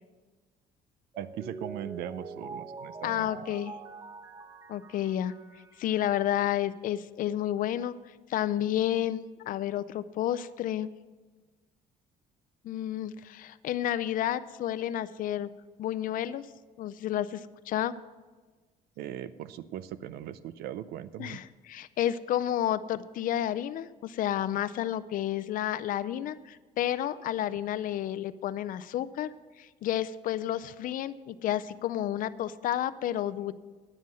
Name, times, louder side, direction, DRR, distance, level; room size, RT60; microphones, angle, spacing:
Mallet percussion, 1.1-6.1, right 4 dB, 15° right, 0.6 m, -45 dB
voice 1, 1.2-3.3 19.0-21.4, right 11 dB, 80° right, 15 dB, 0.5 m, -39 dB
voice 2, 3.0-3.7 4.7-5.3 5.8-7.9 8.3-10.9 12.6-15.5 15.8-16.5 16.8-17.9 21.2-29.3 29.6-33.5, left 12 dB, 60° left, 15 dB, 0.5 m, -31 dB
9.8 x 7.5 x 7.4 m, 1.3 s
cardioid pair, 135°, 16 cm